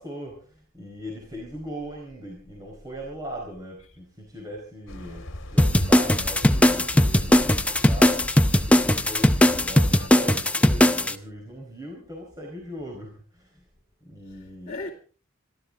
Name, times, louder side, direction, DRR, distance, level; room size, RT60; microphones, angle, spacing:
voice 1, 0.0-13.6 14.0-14.7, equal, 15° right, 4.6 m, -39 dB
sound 1, 4.9-10.1, left 1 dB, 60° left, 2.2 m, -37 dB
sound 2, 5.6-11.1, left 1 dB, 5° left, 0.7 m, -19 dB
voice 2, 6.5-7.3 14.3-14.9, left 2 dB, 35° left, 2.6 m, -39 dB
26.5 x 13.0 x 3.7 m
head